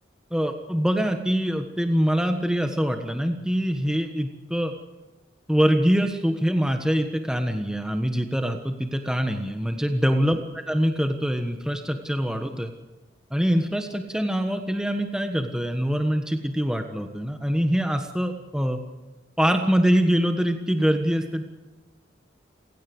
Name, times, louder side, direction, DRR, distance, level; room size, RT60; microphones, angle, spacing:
voice 1, 0.3-4.7 5.5-10.4 10.7-12.7 13.3-18.8 19.4-21.4, equal, 5° right, 5 dB, 1.4 m, -24 dB
29.0 x 17.0 x 8.0 m, 1.1 s
head